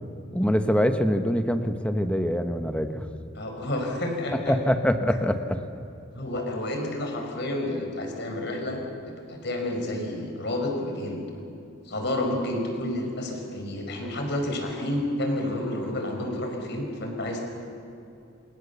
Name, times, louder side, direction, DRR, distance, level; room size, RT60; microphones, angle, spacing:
voice 1, 0.3-3.1 4.5-5.6, equal, 5° left, 7 dB, 1.2 m, -24 dB
voice 2, 3.3-4.6 5.1-5.2 6.1-11.2 11.8-17.4, left 1 dB, 55° left, 2 dB, 5.2 m, -30 dB
28.0 x 27.5 x 7.1 m, 2.7 s
head